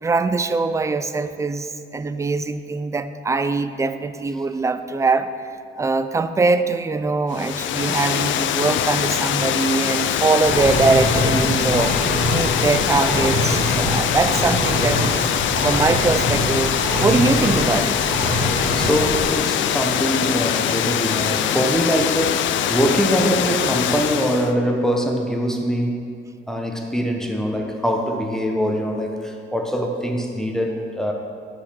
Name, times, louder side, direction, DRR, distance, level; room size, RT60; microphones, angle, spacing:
voice 1, 0.0-5.3 5.8-15.3 15.6-18.0, right 3 dB, 15° right, 11 dB, 0.4 m, -22 dB
Water, 7.3-24.5, left 10 dB, 70° left, 0.4 m, -23 dB
Engine, 10.4-19.2, equal, 35° right, 1.6 m, -24 dB
voice 2, 11.4-11.9 18.7-26.0 26.5-31.1, equal, 5° left, 2 dB, 0.9 m, -23 dB
6.2 x 5.9 x 6.1 m, 2.3 s
cardioid pair, 90°, 20 cm